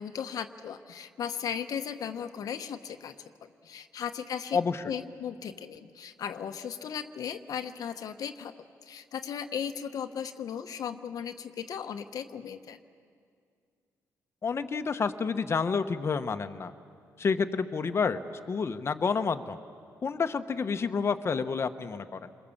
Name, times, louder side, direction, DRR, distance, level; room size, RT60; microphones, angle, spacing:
voice 1, 0.0-3.1 3.6-4.6 4.8-8.5 8.8-12.8, left 8 dB, 70° left, 8 dB, 0.9 m, -36 dB
voice 2, 4.5-4.8 14.4-16.7 17.2-18.2 18.5-19.6 20.0-22.3, left 5 dB, 40° left, 8 dB, 1.0 m, -29 dB
28.0 x 22.0 x 7.1 m, 2.3 s
cardioid pair, 90°, 6 cm